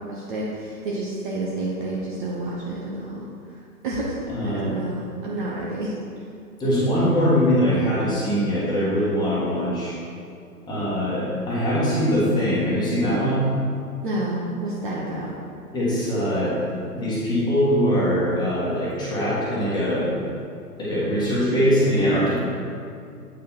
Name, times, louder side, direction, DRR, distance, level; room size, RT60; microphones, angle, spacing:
voice 1, 0.1-3.2 3.8-4.2 4.4-5.9 14.0-15.3, right 2 dB, 30° right, -5 dB, 1.0 m, -29 dB
voice 2, 4.3-4.7 6.6-9.9 10.7-13.5 15.7-16.6 16.9-20.1 20.8-22.4, equal, 10° left, -9 dB, 1.8 m, -22 dB
8.6 x 5.2 x 4.5 m, 2.4 s
figure-of-eight pair, 135°, 47 cm